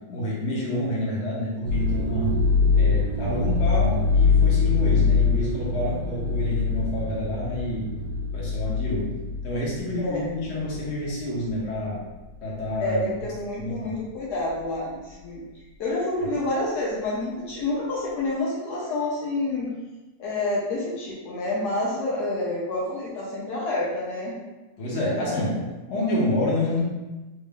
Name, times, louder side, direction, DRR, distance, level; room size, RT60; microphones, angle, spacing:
voice 1, 0.1-2.3 2.8-7.9 8.3-9.1 9.4-12.0 12.4-13.1 13.6-14.0 24.8-25.5 25.9-26.8, left 1 dB, 45° left, -5 dB, 1.1 m, -28 dB
sound 1, 1.6-11.1 11.5-11.9 12.6-12.9, left 4 dB, 65° right, 1.0 m, -23 dB
voice 2, 12.8-15.4 15.8-19.7 20.2-24.4 25.1-25.5, left 2 dB, 70° left, -5 dB, 1.3 m, -28 dB
3.5 x 2.5 x 3.6 m, 1.1 s
omnidirectional pair, 1.9 m